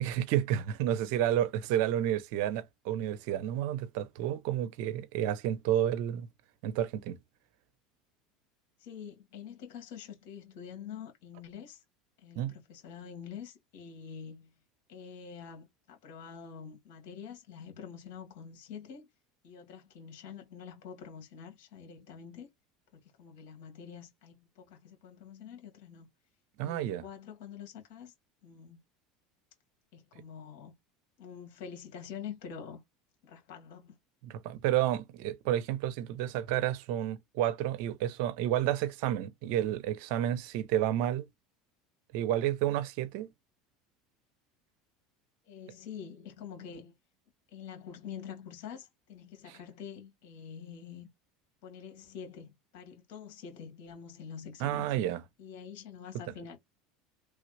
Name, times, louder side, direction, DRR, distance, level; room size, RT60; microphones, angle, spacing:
voice 1, 0.0-6.3 6.6-7.2 12.4-12.5 26.6-27.0 34.2-41.3 42.1-43.3 54.6-55.2, right 12 dB, 70° right, 0.6 m, -30 dB
voice 2, 8.8-11.8 12.2-14.5 14.9-19.1 19.4-22.5 22.9-26.1 26.6-28.1 28.4-28.8 29.9-30.7 31.2-32.8 33.2-34.0 45.4-47.0 47.5-51.1 51.6-54.9 55.4-56.6, left 7 dB, 70° left, 1.8 m, -46 dB
3.2 x 2.4 x 3.1 m
hypercardioid pair, 95°, 0 cm